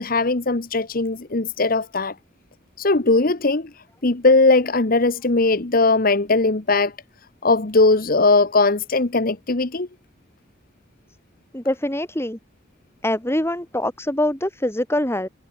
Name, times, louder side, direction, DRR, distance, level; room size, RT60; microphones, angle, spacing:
voice 1, 0.0-2.1 2.8-3.7 4.0-6.9 7.4-9.9, left 3 dB, 50° left, 1.2 m, -19 dB
voice 2, 11.5-12.4 13.0-15.3, left 1 dB, 15° left, 7.1 m, -24 dB
head